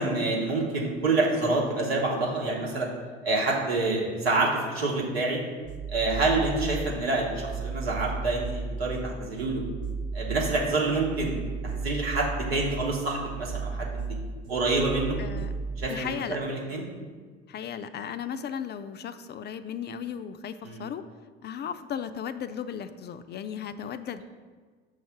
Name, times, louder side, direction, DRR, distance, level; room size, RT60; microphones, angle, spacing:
voice 1, 0.0-2.9 3.2-5.4 5.9-9.6 10.1-14.0 14.5-15.2 15.8-16.9 20.6-20.8, right 2 dB, 90° right, -2 dB, 1.2 m, -27 dB
sound 1, 5.6-15.9, right 4 dB, 65° right, 0.8 m, -35 dB
voice 2, 15.2-15.5 15.9-16.4 17.5-21.0 21.4-24.2, left 8 dB, 35° left, 11 dB, 0.4 m, -36 dB
6.5 x 3.2 x 5.7 m, 1.5 s
hypercardioid pair, 60°, 29 cm